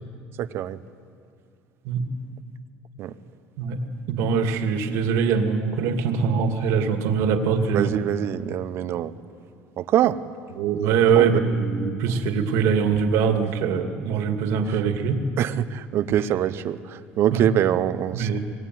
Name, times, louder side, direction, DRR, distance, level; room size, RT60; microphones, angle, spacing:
voice 1, 0.4-0.8 3.0-3.1 7.7-9.1 9.8-10.2 11.2-11.3 15.4-18.4, right 11 dB, 55° right, 13 dB, 1.0 m, -24 dB
voice 2, 4.1-7.9 10.6-15.2 16.1-16.2 17.3-17.4 18.1-18.4, right 6 dB, 75° right, 6 dB, 2.5 m, -22 dB
25.5 x 22.0 x 9.5 m, 2.3 s
supercardioid pair, 110°, 5 cm